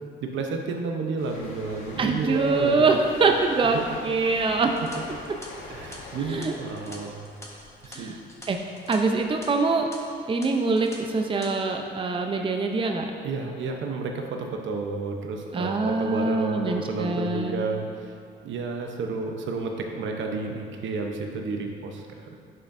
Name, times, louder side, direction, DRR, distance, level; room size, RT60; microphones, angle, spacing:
voice 1, 0.2-3.0 3.7-3.8 4.8-4.9 5.7-7.2 7.8-8.1 13.2-18.1 18.4-22.4, right 4 dB, 75° right, 3 dB, 0.9 m, -31 dB
sound 1, 1.2-8.6 8.9-9.2, left 2 dB, 85° left, 1.3 m, -44 dB
voice 2, 2.0-4.8 6.3-6.5 7.9-8.2 8.5-8.6 8.9-9.9 10.3-13.0 15.5-17.7, right 3 dB, 25° right, 3 dB, 0.6 m, -24 dB
sound 2, 4.7-9.0 9.2-9.5 9.9-10.0 10.4-11.0 11.2-11.5, left 1 dB, 15° left, 1.3 m, -45 dB
11.0 x 5.9 x 2.6 m, 2.3 s
cardioid pair, 90°, 20 cm